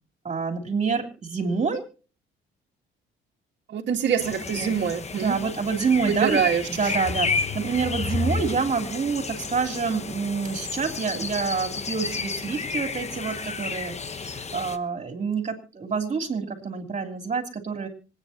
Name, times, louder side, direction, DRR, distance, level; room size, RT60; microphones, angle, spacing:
voice 1, 0.2-1.9 4.6-4.7 5.1-6.4 6.7-17.9, right 5 dB, 35° right, 4 dB, 3.1 m, -27 dB
voice 2, 3.7-5.4 6.1-6.9, right 7 dB, 60° right, 1 dB, 1.8 m, -25 dB
sound 1, 4.2-14.8, left 4 dB, 35° left, 1.0 m, -31 dB
25.5 x 9.2 x 2.9 m, 0.35 s
cardioid pair, 90°, 20 cm